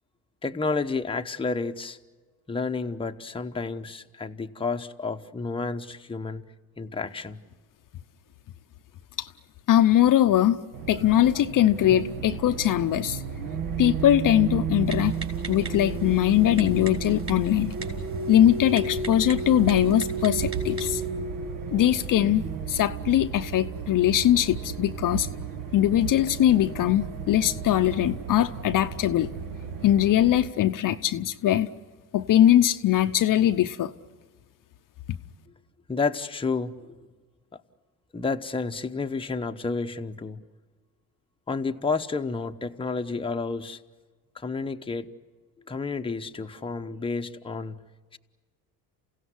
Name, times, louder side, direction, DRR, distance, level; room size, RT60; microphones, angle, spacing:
voice 1, 0.4-2.0 2.5-6.4 6.8-7.4 35.9-37.0 38.1-40.4 41.5-43.8 44.3-45.1 45.7-47.8 48.1-48.2, left 4 dB, 15° left, 5 dB, 1.0 m, -30 dB
voice 2, 9.7-10.6 10.9-13.2 13.8-15.2 15.5-17.7 18.3-21.0 21.7-22.4 22.7-25.3 25.7-29.3 29.8-31.7 32.1-33.9, left 12 dB, 50° left, 8 dB, 0.8 m, -21 dB
sound 1, 10.7-30.5, right 5 dB, 55° right, 1.5 m, -33 dB
Typing, 14.9-21.1, right 3 dB, 30° right, 4.8 m, -43 dB
29.0 x 16.5 x 9.7 m, 1.4 s
supercardioid pair, 85°, 41 cm